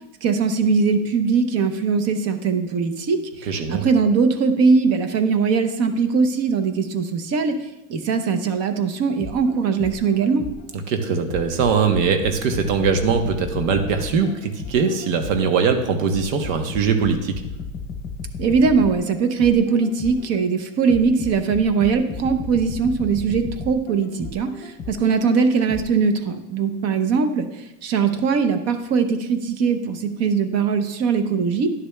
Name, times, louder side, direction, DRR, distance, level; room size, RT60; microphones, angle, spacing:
voice 1, 0.2-7.5 7.9-10.4 18.4-27.5 27.8-31.7, right 5 dB, 40° right, 8 dB, 0.7 m, -20 dB
voice 2, 3.5-3.9 10.9-17.4, right 5 dB, 80° right, 6 dB, 1.0 m, -21 dB
sound 1, 9.2-10.8 11.3-15.6 16.1-20.4 20.9-25.2 25.7-25.8, left 5 dB, 30° left, 0.7 m, -34 dB
11.0 x 6.7 x 2.2 m, 0.94 s
supercardioid pair, 145°, 39 cm